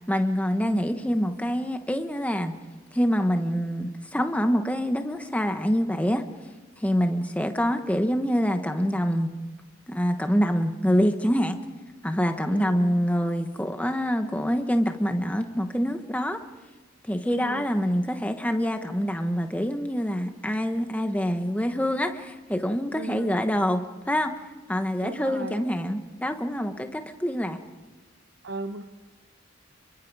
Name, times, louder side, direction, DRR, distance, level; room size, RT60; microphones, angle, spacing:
voice 1, 0.1-2.5 2.9-6.2 6.8-9.3 9.9-11.6 12.0-16.4 17.1-24.3 24.7-27.6, equal, 5° left, 6 dB, 1.1 m, -25 dB
voice 2, 12.5-13.0 17.2-17.7 22.9-23.4 25.0-25.6 28.4-28.9, right 2 dB, 65° right, 7 dB, 0.9 m, -36 dB
30.0 x 23.5 x 4.8 m, 1.3 s
head